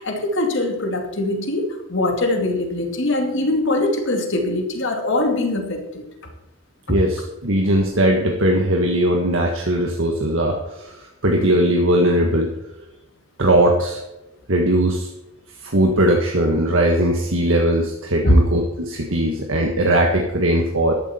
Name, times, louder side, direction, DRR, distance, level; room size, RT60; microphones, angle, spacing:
voice 1, 0.0-6.0 18.2-18.3, left 1 dB, 55° left, 3 dB, 2.4 m, -22 dB
voice 2, 6.9-12.5 13.4-14.0 14.5-15.1 15.6-20.9, right 1 dB, 60° right, 1 dB, 1.6 m, -19 dB
13.0 x 12.0 x 4.4 m, 0.93 s
head